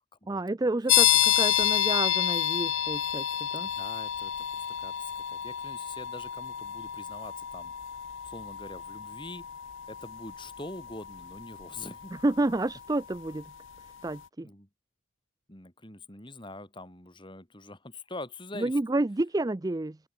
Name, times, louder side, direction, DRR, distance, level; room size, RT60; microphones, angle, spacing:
voice 1, 0.3-3.7 12.1-13.5 14.0-14.5 18.6-20.0, right 2 dB, 20° right, 0.4 m, -30 dB
sound 1, 0.9-13.4, left 12 dB, 65° left, 0.7 m, -29 dB
voice 2, 3.6-7.7 8.2-9.5 9.9-12.1 14.4-14.7 15.5-18.8, left 2 dB, 25° left, 4.4 m, -44 dB
open air
head